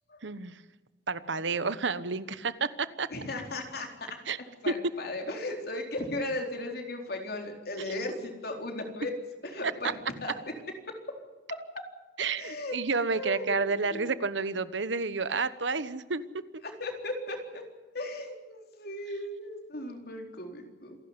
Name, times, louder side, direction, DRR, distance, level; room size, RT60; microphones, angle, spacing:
voice 1, 0.2-0.6 1.1-3.1 4.3-4.4 4.7-4.8 12.2-16.4, right 4 dB, 75° right, 15 dB, 1.1 m, -30 dB
voice 2, 3.1-3.9 4.6-9.1 9.4-9.9 10.2-10.3 12.4-12.8 13.1-14.1 16.8-17.6 17.9-21.0, left 2 dB, 55° left, 3 dB, 4.0 m, -36 dB
27.5 x 12.0 x 9.7 m, 1.3 s
head